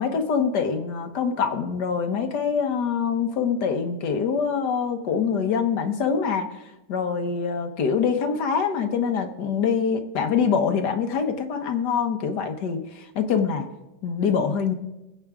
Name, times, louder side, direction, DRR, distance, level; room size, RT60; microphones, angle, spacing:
voice 1, 0.0-6.5 6.9-13.7 14.0-14.7, left 6 dB, 70° left, 6 dB, 1.6 m, -24 dB
20.5 x 8.0 x 3.6 m, 0.99 s
omnidirectional pair, 1.9 m